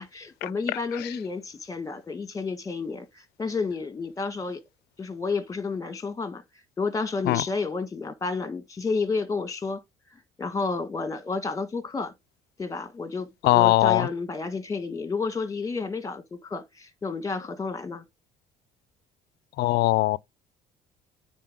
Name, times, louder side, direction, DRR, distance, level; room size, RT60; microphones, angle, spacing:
voice 1, 0.0-4.6 5.0-6.4 6.8-9.8 10.1-12.1 12.6-18.0, left 4 dB, 20° left, 1.7 m, -31 dB
voice 2, 13.4-14.1 19.6-20.2, left 18 dB, 80° left, 0.5 m, -21 dB
9.3 x 4.3 x 3.7 m
cardioid pair, 110°, 17 cm